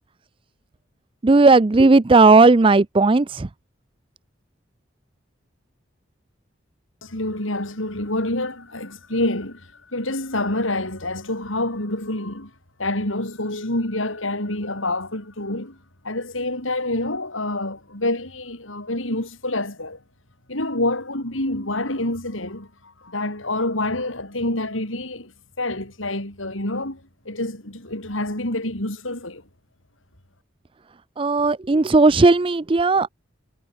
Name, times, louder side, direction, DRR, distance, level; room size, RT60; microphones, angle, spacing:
voice 1, 1.2-3.5 31.2-33.1, right 3 dB, 25° right, 0.4 m, -15 dB
voice 2, 7.0-12.5 12.8-15.8 16.0-20.0 20.5-25.3 25.6-29.4, left 2 dB, 90° left, 7.8 m, -27 dB
head